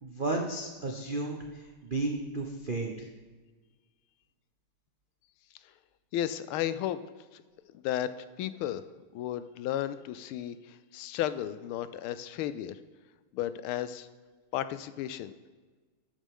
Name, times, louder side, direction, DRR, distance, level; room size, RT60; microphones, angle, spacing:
voice 1, 0.0-3.1, right 2 dB, 80° right, 2 dB, 0.4 m, -33 dB
voice 2, 6.1-7.4 7.7-8.1 8.4-8.8 9.1-12.8 13.3-14.1 14.5-15.3, left 11 dB, 80° left, 13 dB, 1.4 m, -34 dB
12.5 x 8.5 x 3.7 m, 1.4 s
omnidirectional pair, 2.4 m